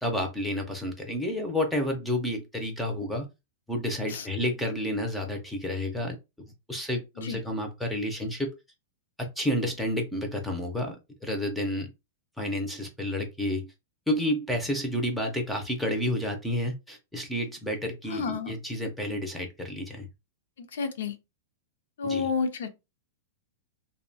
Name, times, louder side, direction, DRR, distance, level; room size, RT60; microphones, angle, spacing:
voice 1, 0.0-3.3 3.7-6.2 6.7-8.5 9.2-11.0 11.2-11.9 12.4-13.7 14.1-20.1 22.0-22.3, left 1 dB, ahead, 0.4 m, -30 dB
voice 2, 18.1-18.5 20.6-21.2 22.0-22.7, left 5 dB, 80° left, 0.5 m, -30 dB
2.6 x 2.1 x 2.6 m
supercardioid pair, 160°, 0 cm